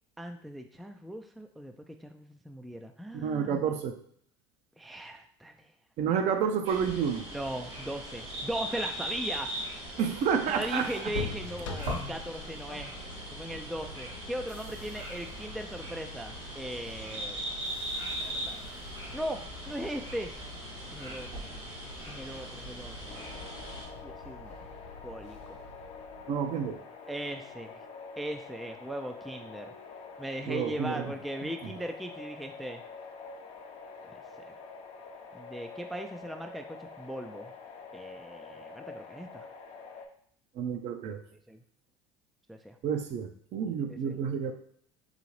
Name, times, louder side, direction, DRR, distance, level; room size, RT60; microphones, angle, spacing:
voice 1, 0.2-3.6 4.8-5.7 7.3-9.8 10.5-12.9 13.3-17.4 18.2-18.6 19.1-20.3 20.9-21.3 22.1-23.4 24.0-24.6 25.0-25.6 27.1-27.8 28.2-29.7 30.2-32.8 34.1-34.2 35.3-37.6 37.9-39.5 41.5-41.6 42.5-42.8 43.9-44.1, right 1 dB, ahead, 5 dB, 0.3 m, -39 dB
voice 2, 3.1-4.0 6.0-7.2 10.0-11.1 26.3-26.8 30.5-31.1 40.6-41.2 42.8-44.5, right 7 dB, 50° right, 7 dB, 0.6 m, -30 dB
sound 1, 6.6-23.9, right 1 dB, 85° right, 1.5 m, -40 dB
sound 2, 11.1-26.8, left 3 dB, 80° left, 0.5 m, -45 dB
sound 3, 23.1-40.1, left 4 dB, 45° left, 0.7 m, -46 dB
3.9 x 2.7 x 3.1 m, 0.63 s
hypercardioid pair, 70°, 15 cm